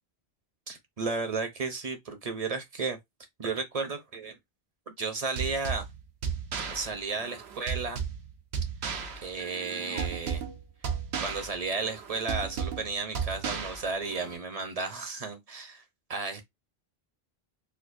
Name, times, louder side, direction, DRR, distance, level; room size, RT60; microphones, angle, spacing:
voice 1, 0.7-3.0 3.4-4.3 4.9-5.9 6.7-8.0 9.2-10.4 11.2-15.7 16.1-16.4, right 4 dB, 40° right, 0.7 m, -33 dB
sound 1, 5.4-14.3, right 6 dB, 80° right, 1.0 m, -35 dB
4.4 x 2.2 x 2.5 m
omnidirectional pair, 1.1 m